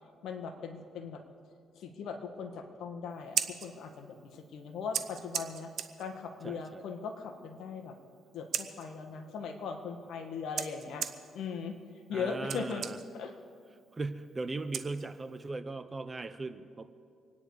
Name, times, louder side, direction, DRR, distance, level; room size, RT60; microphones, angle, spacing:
voice 1, 0.2-1.2 1.7-5.7 6.0-8.0 8.3-11.1 11.3-11.8 12.1-12.9 13.1-13.3, left 5 dB, 75° left, 5 dB, 1.7 m, -39 dB
Scissors, 3.1-15.5, right 9 dB, 70° right, 1.0 m, -42 dB
voice 2, 6.4-6.8 12.1-13.0 13.9-16.9, right 3 dB, 25° right, 11 dB, 0.9 m, -38 dB
25.5 x 10.0 x 4.9 m, 2.2 s
cardioid pair, 90°, 0 cm